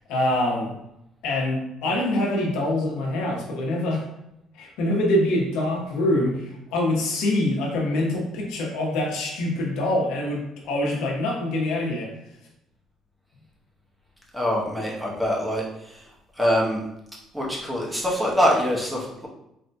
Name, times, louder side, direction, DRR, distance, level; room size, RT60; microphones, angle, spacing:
voice 1, 0.1-0.7 1.2-4.0 4.5-12.1, left 1 dB, 85° left, 0 dB, 0.9 m, -25 dB
voice 2, 14.3-15.6 16.4-16.8 17.3-19.3, equal, 5° right, -3 dB, 0.8 m, -24 dB
4.2 x 2.7 x 2.2 m, 0.82 s
cardioid pair, 125°, 0 cm